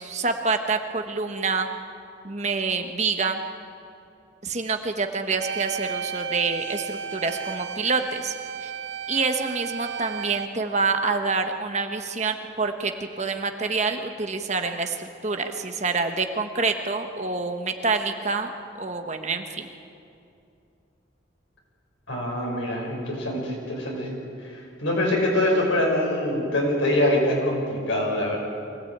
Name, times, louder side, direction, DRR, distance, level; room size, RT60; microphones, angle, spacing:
voice 1, 0.0-1.7 2.2-3.4 4.4-8.3 8.6-8.7 9.1-18.5 18.8-19.7, right 4 dB, 35° right, 6 dB, 1.2 m, -27 dB
sound 1, 5.4-10.5, right 7 dB, 85° right, 2.1 m, -33 dB
voice 2, 22.1-24.1 24.5-28.4, left 1 dB, 85° left, -1 dB, 5.8 m, -24 dB
23.5 x 16.5 x 8.8 m, 2.6 s
head